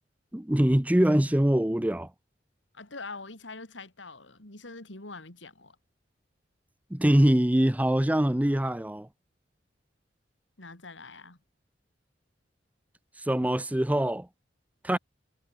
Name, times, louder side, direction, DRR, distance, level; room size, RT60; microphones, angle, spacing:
voice 1, 0.3-2.1 6.9-9.1 13.2-14.3 14.8-15.0, right 1 dB, 10° right, 0.6 m, -23 dB
voice 2, 2.7-5.8 10.6-11.4, left 3 dB, 80° left, 3.8 m, -44 dB
head